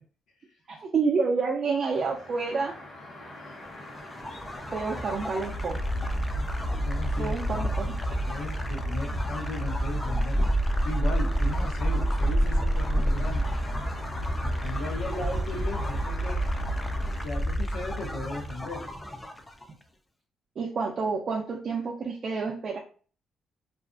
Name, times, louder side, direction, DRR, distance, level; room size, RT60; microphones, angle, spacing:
voice 1, 0.7-2.8 4.7-5.8 7.2-8.3 20.6-22.8, right 4 dB, 50° right, 0 dB, 0.4 m, -29 dB
sound 1, 1.9-17.2, left 1 dB, 50° left, 1.1 m, -44 dB
sound 2, 4.0-19.6, right 1 dB, 15° left, 0.4 m, -28 dB
voice 2, 6.8-7.3 8.3-10.5 10.8-13.5 14.4-16.4 17.2-18.9, left 2 dB, 80° left, 1 dB, 0.7 m, -36 dB
2.4 x 2.2 x 2.4 m, 0.42 s
cardioid pair, 90°, 0 cm